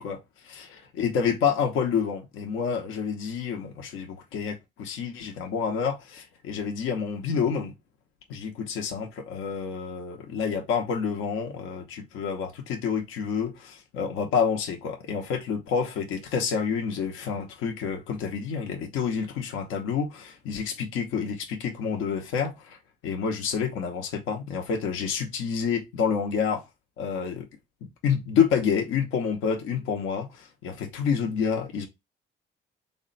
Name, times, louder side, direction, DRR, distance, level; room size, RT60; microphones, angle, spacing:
voice 1, 0.0-0.7 1.0-7.7 8.3-22.8 23.0-26.6 27.0-27.5 28.0-31.9, left 6 dB, 90° left, 0.8 m, -28 dB
3.6 x 2.2 x 3.7 m
cardioid pair, 90°, 20 cm